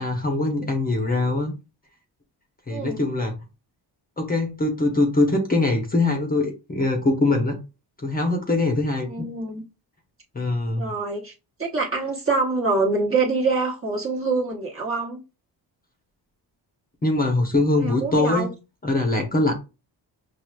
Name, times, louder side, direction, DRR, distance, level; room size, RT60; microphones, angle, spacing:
voice 1, 0.0-1.5 2.7-3.4 4.2-7.6 8.0-9.1 10.3-10.9 17.0-18.5 18.8-19.5, left 2 dB, 20° left, 0.7 m, -22 dB
voice 2, 2.7-3.0 9.0-9.6 10.8-11.3 11.6-15.2 17.8-18.5, right 3 dB, 30° right, 1.0 m, -25 dB
5.9 x 2.4 x 2.2 m
wide cardioid pair, 150°, 43 cm